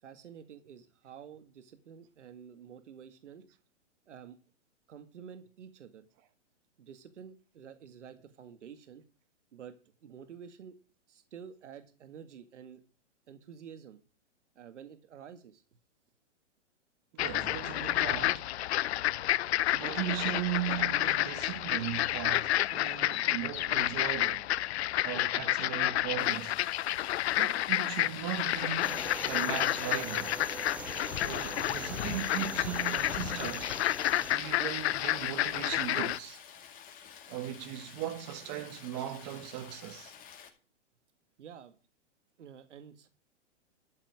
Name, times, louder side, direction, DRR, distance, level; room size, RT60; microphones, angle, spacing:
voice 1, 0.0-3.5 4.1-4.4 4.9-6.1 6.8-9.0 9.5-10.7 11.1-12.8 13.3-14.0 14.6-15.6 23.1-23.2 41.4-41.8 42.4-43.1, right 8 dB, 75° right, 2.0 m, -50 dB
voice 2, 17.1-18.5 19.7-24.5 25.0-26.6 27.4-30.4 31.1-33.7 34.3-36.4 37.3-40.1, right 12 dB, 35° right, 1.6 m, -38 dB
sound 1, 17.2-36.2, left 14 dB, 60° left, 0.5 m, -30 dB
Stream, 26.2-40.5, left 7 dB, 25° left, 2.3 m, -51 dB
sound 2, 28.8-34.3, right 3 dB, 5° right, 0.5 m, -43 dB
13.0 x 5.9 x 8.6 m
hypercardioid pair, 140°, 36 cm